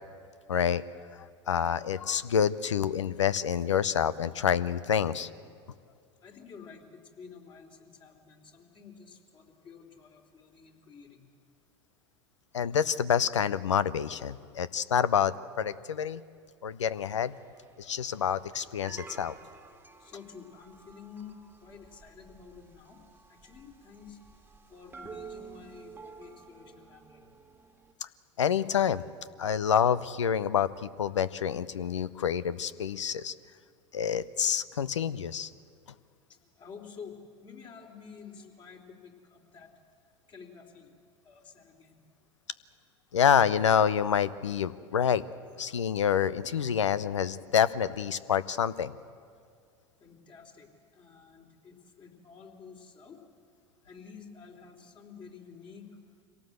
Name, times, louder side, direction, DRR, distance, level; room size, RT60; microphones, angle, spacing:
voice 1, 0.5-0.8 1.1-5.3 12.5-16.2 16.6-17.3 17.8-19.4 28.4-29.0 29.4-33.3 33.9-35.5 43.1-45.2 45.6-48.9, left 8 dB, 90° left, 16 dB, 0.7 m, -27 dB
voice 2, 6.2-11.3 20.0-23.0 23.3-24.2 24.7-27.3 36.3-39.7 40.3-40.9 41.2-42.0 50.0-53.2 53.8-56.0, left 6 dB, 35° left, 2 dB, 3.7 m, -50 dB
sound 1, 17.0-27.9, right 5 dB, 15° right, 1.7 m, -51 dB
24.5 x 17.5 x 8.0 m, 2.2 s
hypercardioid pair, 90°, 15 cm